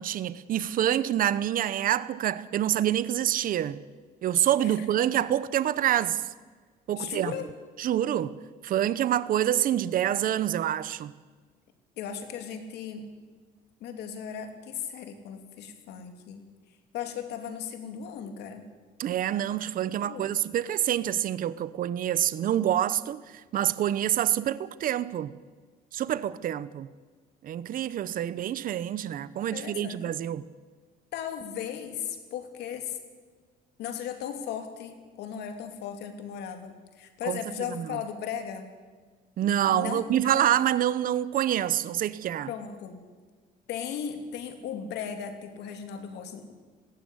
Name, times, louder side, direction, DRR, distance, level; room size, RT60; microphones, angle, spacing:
voice 1, 0.0-3.8 4.2-6.2 6.9-7.3 7.8-8.3 8.6-11.1 19.0-23.2 23.5-25.3 25.9-26.9 27.4-30.4 37.3-37.4 37.7-37.8 39.4-42.5, right 11 dB, 55° right, 0.9 m, -26 dB
voice 2, 7.0-7.5 12.0-13.1 13.8-16.4 16.9-18.7 20.0-20.3 29.5-30.1 31.1-33.0 33.8-38.7 39.7-40.4 42.5-43.0 43.7-46.5, left 8 dB, 80° left, 3.1 m, -36 dB
19.5 x 16.0 x 9.8 m
cardioid pair, 110°, 17 cm